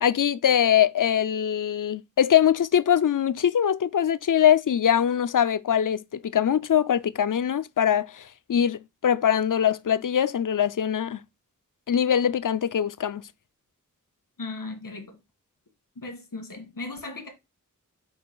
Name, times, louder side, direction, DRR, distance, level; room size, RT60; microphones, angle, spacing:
voice 1, 0.0-11.2 11.9-13.2, left 9 dB, 70° left, 0.5 m, -22 dB
voice 2, 14.4-15.2 16.0-17.3, left 3 dB, 85° left, 1.9 m, -37 dB
6.9 x 2.5 x 5.4 m
wide cardioid pair, 45°, 33 cm